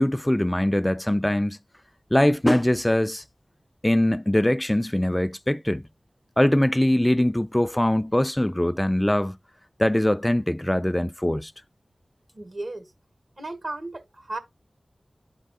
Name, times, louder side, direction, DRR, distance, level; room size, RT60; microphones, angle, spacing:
voice 1, 0.0-1.6 2.1-3.2 3.8-5.8 6.4-9.4 9.8-11.5, left 1 dB, 15° left, 0.3 m, -22 dB
voice 2, 12.3-12.9 13.4-14.4, right 2 dB, 70° right, 1.7 m, -34 dB
12.0 x 4.5 x 2.4 m
cardioid pair, 40°, 0 cm